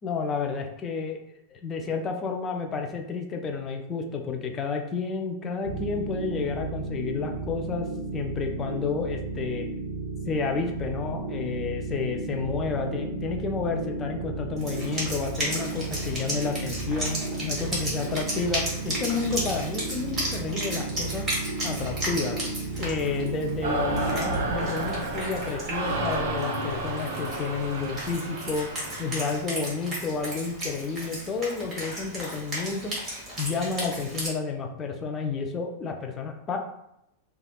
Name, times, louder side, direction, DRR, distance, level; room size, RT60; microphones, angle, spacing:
voice 1, 0.0-1.2 1.5-7.9 8.1-9.7 10.3-21.2 21.6-22.4 22.8-28.7 29.0-32.9 33.4-36.6, left 4 dB, 25° left, 3 dB, 0.4 m, -31 dB
sound 1, 5.6-24.2, right 3 dB, 90° left, 0.8 m, -34 dB
Wind instrument woodwind instrument, 14.6-34.3, right 1 dB, 15° right, 1.3 m, -35 dB
sound 2, 23.6-29.4, right 2 dB, 60° right, 0.5 m, -31 dB
3.3 x 2.3 x 2.3 m, 0.80 s
figure-of-eight pair, 90°, 0 cm